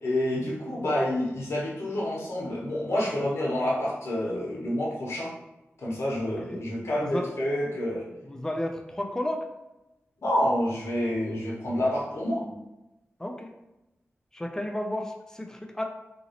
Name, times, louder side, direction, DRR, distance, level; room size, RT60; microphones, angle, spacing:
voice 1, 0.0-5.3 5.8-8.1 10.2-12.5, left 1 dB, 75° left, -5 dB, 0.9 m, -28 dB
voice 2, 7.0-7.3 8.2-9.4 13.2-13.5 14.3-15.8, left 1 dB, 10° left, 3 dB, 0.3 m, -32 dB
2.8 x 2.6 x 2.8 m, 0.96 s
wide cardioid pair, 115°, 5 cm